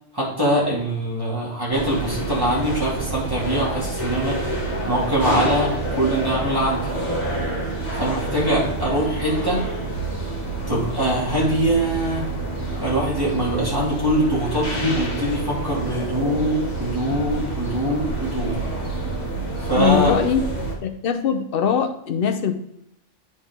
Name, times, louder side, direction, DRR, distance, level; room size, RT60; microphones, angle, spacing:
voice 1, 0.1-4.4 4.8-6.9 8.0-9.6 10.7-12.3 12.8-18.5 19.6-20.1, right 1 dB, 20° right, -6 dB, 2.5 m, -23 dB
sound 1, 1.7-20.8, right 2 dB, 35° left, 1.5 m, -27 dB
voice 2, 19.7-20.4 20.8-22.5, left 8 dB, 55° left, 6 dB, 0.9 m, -21 dB
9.1 x 4.0 x 3.6 m, 0.77 s
omnidirectional pair, 1.2 m